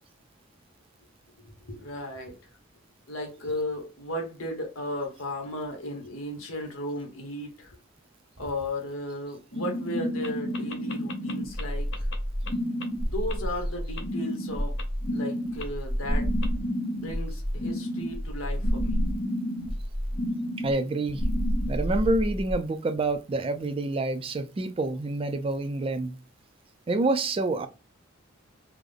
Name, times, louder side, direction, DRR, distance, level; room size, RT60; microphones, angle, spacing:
voice 1, 1.4-2.4 3.1-7.8 8.4-11.9 13.0-14.8 15.1-16.3 16.9-19.0, left 1 dB, 90° left, 1.1 m, -35 dB
sound 1, 9.5-22.5, equal, 35° left, 1.4 m, -29 dB
sound 2, 10.2-10.3 10.5-11.6 11.9-12.2 12.4-12.5 12.8-12.9 13.3-13.4 14.0-14.1 14.8-14.9 15.6-15.7 16.4-16.5, left 5 dB, 60° left, 0.5 m, -38 dB
voice 2, 20.6-21.2 21.7-26.2 26.9-27.7, right 2 dB, 25° right, 0.3 m, -27 dB
3.5 x 2.0 x 3.3 m
head